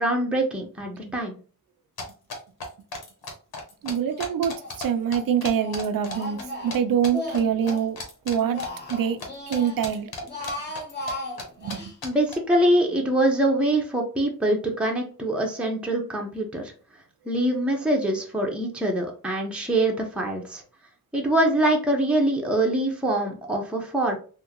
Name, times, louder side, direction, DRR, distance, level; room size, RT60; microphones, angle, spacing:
voice 1, 0.0-1.4 12.0-16.7 17.3-20.6 21.1-24.2, right 1 dB, 5° right, 0.8 m, -24 dB
sound 1, 2.0-4.9 5.1-6.8 7.0-7.4 7.7-9.3 9.5-11.1 11.4-11.5 11.7-11.8 12.0-12.3, left 3 dB, 85° left, 0.9 m, -35 dB
voice 2, 3.8-8.0 8.3-8.6 8.9-9.2 9.5-10.1 11.6-11.8, right 8 dB, 70° right, 0.5 m, -25 dB
Speech, 4.1-4.8 5.1-7.9 8.3-9.8 10.2-11.9, left 1 dB, 30° left, 1.2 m, -36 dB
3.5 x 2.1 x 2.9 m
cardioid pair, 70°, 36 cm